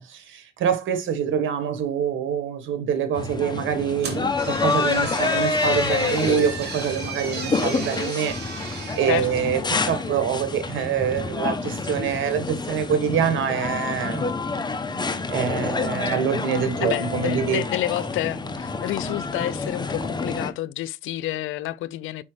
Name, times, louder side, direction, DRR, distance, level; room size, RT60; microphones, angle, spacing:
voice 1, 0.0-14.3 15.3-17.6, right 7 dB, 75° right, 1.6 m, -25 dB
sound 1, 3.1-20.5, left 4 dB, 20° left, 0.9 m, -28 dB
sound 2, 4.0-10.1, right 5 dB, 55° right, 3.1 m, -36 dB
voice 2, 9.1-9.5 16.8-22.2, left 14 dB, 85° left, 0.5 m, -29 dB
5.5 x 5.4 x 3.3 m
cardioid pair, 90°, 20 cm